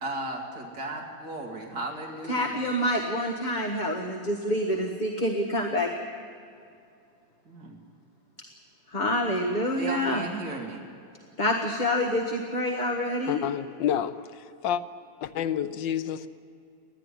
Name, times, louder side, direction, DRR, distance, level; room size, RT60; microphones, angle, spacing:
voice 1, 0.0-2.6 7.5-7.8 9.8-10.8, right 2 dB, 65° right, 2.7 m, -35 dB
voice 2, 2.3-5.9 8.9-10.2 11.4-13.4, left 1 dB, 25° left, 1.3 m, -27 dB
voice 3, 13.3-14.8 15.2-16.3, left 9 dB, 85° left, 1.4 m, -29 dB
20.5 x 14.0 x 9.9 m
omnidirectional pair, 2.0 m